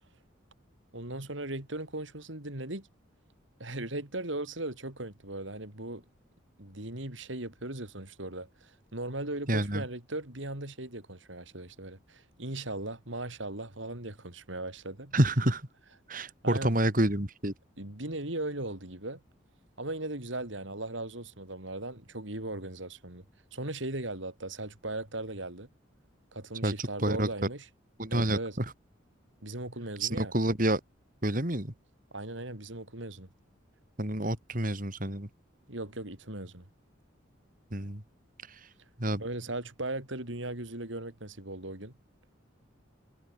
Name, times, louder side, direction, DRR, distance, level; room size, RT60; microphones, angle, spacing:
voice 1, 0.9-2.9 3.6-6.0 6.6-15.1 16.4-16.8 17.8-19.2 19.8-23.2 23.5-25.7 26.3-27.7 28.1-28.6 29.4-30.3 32.1-33.3 35.7-36.7 39.2-41.9, right 2 dB, 70° right, 4.3 m, -38 dB
voice 2, 9.5-9.8 15.1-15.7 16.1-17.5 26.6-27.3 28.0-28.6 30.0-30.8 31.2-31.7 34.0-35.3 37.7-38.0 38.5-38.7 39.0-39.2, right 1 dB, 40° right, 3.4 m, -28 dB
head